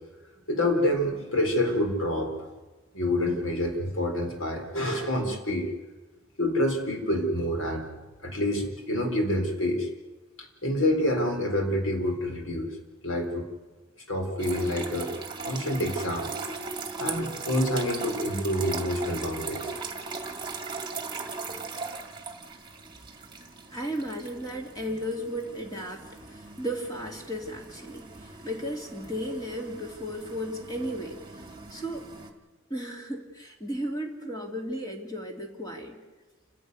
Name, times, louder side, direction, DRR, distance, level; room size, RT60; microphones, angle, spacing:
voice 1, 0.5-2.5 2.9-5.7 6.4-7.8 8.2-9.9 10.6-12.7 13.0-13.5 14.1-15.1 15.4-16.3 17.0-19.7, left 1 dB, 80° left, 4 dB, 4.1 m, -27 dB
sound 1, 14.4-32.3, right 4 dB, 25° right, 2.1 m, -39 dB
voice 2, 23.7-31.2 31.7-32.1 32.7-36.0, equal, 20° left, 1 dB, 2.6 m, -35 dB
29.0 x 11.0 x 9.5 m, 1.2 s
head